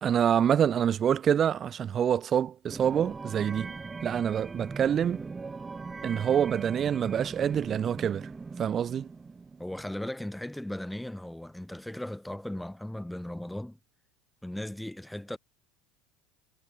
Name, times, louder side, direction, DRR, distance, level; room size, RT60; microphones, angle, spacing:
voice 1, 0.0-3.7 4.0-5.2 6.0-8.3 8.6-9.1, right 9 dB, 40° right, 1.1 m, -26 dB
sound 1, 2.7-9.8, right 4 dB, 20° right, 5.1 m, -40 dB
voice 2, 9.6-13.8 14.4-15.4, left 1 dB, 5° left, 3.2 m, -37 dB
hypercardioid pair, 90°, 0 cm